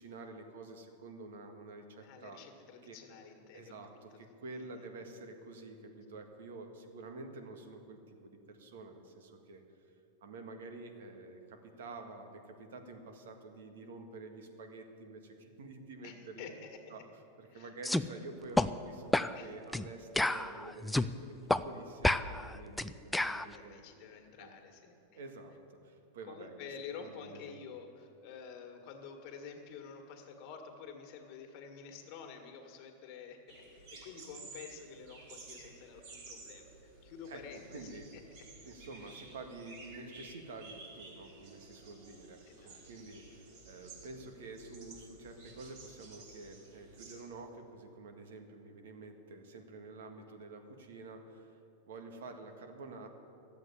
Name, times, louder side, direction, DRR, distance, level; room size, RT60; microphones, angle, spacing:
voice 1, 0.0-2.4 2.8-3.0 3.5-9.9 10.2-16.5 16.9-17.0 17.4-23.8 24.4-24.5 25.1-27.6 37.3-37.4 37.7-38.1 38.6-51.6 51.9-53.1, right 3 dB, 85° right, 5 dB, 1.7 m, -49 dB
voice 2, 2.0-3.7 4.0-4.2 4.5-5.1 16.0-16.9 17.5-17.7 19.3-19.6 23.5-25.2 26.3-38.2 39.0-39.2 42.5-42.8, left 6 dB, 50° left, 3 dB, 1.8 m, -49 dB
sound 1, 17.8-18.0 18.6-18.7 19.1-19.3 19.7-19.9 20.2-21.1 21.5-21.6 22.0-23.4, left 1 dB, 5° left, 0.3 m, -30 dB
sound 2, 33.5-47.2, right 3 dB, 55° right, 3.7 m, -53 dB
13.5 x 8.0 x 9.7 m, 2.8 s
supercardioid pair, 145°, 0 cm